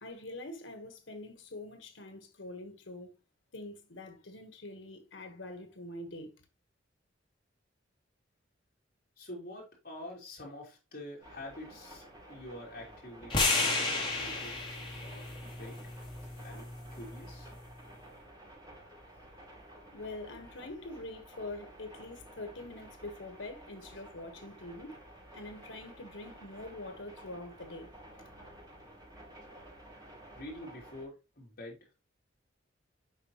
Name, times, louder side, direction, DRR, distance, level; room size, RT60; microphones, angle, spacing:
voice 1, 0.0-3.1 3.5-6.3 19.9-25.0 25.3-27.9 28.2-28.3, left 2 dB, 75° left, 1.4 m, -44 dB
voice 2, 9.2-14.5 15.0-15.9 16.4-17.5 30.3-31.9, left 1 dB, 50° left, 3.4 m, -47 dB
sound 1, 11.2-31.1, right 1 dB, 20° right, 4.0 m, -53 dB
sound 2, 13.3-17.5, left 3 dB, 25° left, 2.7 m, -33 dB
7.4 x 5.6 x 3.0 m
head